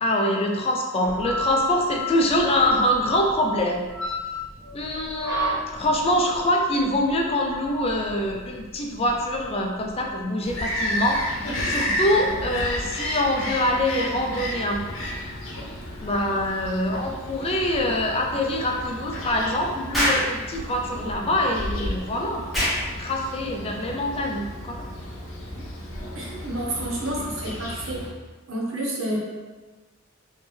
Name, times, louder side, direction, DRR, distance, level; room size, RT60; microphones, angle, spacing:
voice 1, 0.0-3.8 4.7-14.8 16.0-22.4 23.0-24.9, left 1 dB, 30° left, 1 dB, 0.4 m, -24 dB
sound 1, 1.0-10.2, equal, 20° right, 1.2 m, -32 dB
Bird vocalization bird call bird song, 10.4-28.1, left 1 dB, 65° left, 0.8 m, -32 dB
Explosion, 19.9-20.3 22.5-22.8, equal, ahead, 0.9 m, -22 dB
voice 2, 26.1-28.1 28.5-29.3, right 1 dB, 65° right, -3 dB, 0.9 m, -29 dB
3.2 x 3.1 x 3.4 m, 1.3 s
head